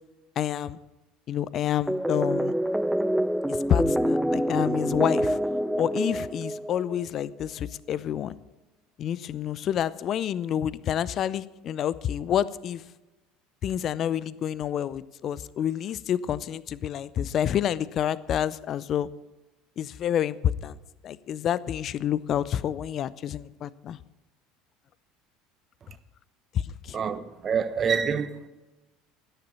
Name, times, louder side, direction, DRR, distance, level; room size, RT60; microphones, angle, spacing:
voice 1, 0.4-0.8 1.3-2.5 3.5-5.4 5.8-8.3 9.0-12.8 13.6-19.1 19.8-20.8 21.0-24.0 26.5-27.0, left 10 dB, 50° left, 0.5 m, -28 dB
sound 1, 1.9-7.0, right 1 dB, 5° right, 0.5 m, -26 dB
voice 2, 26.9-28.5, right 6 dB, 40° right, 1.1 m, -27 dB
13.5 x 10.0 x 5.6 m
hypercardioid pair, 70°, 0 cm